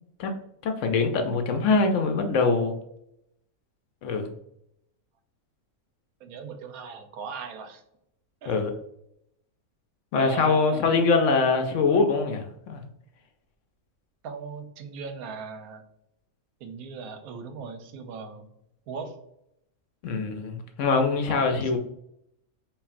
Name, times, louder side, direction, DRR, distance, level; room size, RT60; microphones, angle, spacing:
voice 1, 0.2-2.8 4.0-4.3 8.5-8.7 10.1-12.8 20.0-21.8, left 4 dB, 70° left, 5 dB, 0.8 m, -23 dB
voice 2, 6.2-7.8 8.4-8.6 10.2-10.9 14.2-15.8 16.6-18.5 18.9-19.2 21.3-21.8, right 5 dB, 85° right, 6 dB, 1.1 m, -38 dB
5.3 x 2.5 x 2.5 m, 0.76 s
omnidirectional pair, 1.5 m